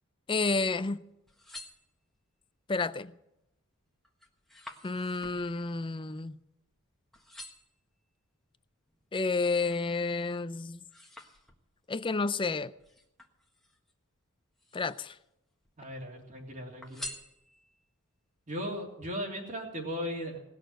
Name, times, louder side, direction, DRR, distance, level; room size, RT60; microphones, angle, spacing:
voice 1, 0.3-1.0 2.7-3.1 4.8-6.3 9.1-10.8 11.9-12.7 14.7-15.1, left 3 dB, 25° left, 0.5 m, -30 dB
sound 1, 1.1-2.4 3.0-3.4 3.7-6.8 7.1-7.8 8.4-9.9 10.3-11.9 12.8-13.9 14.5-15.3 15.6-16.3 16.8-17.9 18.4-18.5, left 1 dB, ahead, 1.5 m, -49 dB
voice 2, 15.8-17.0 18.5-20.4, equal, 35° right, 3.1 m, -37 dB
19.0 x 6.7 x 9.1 m
head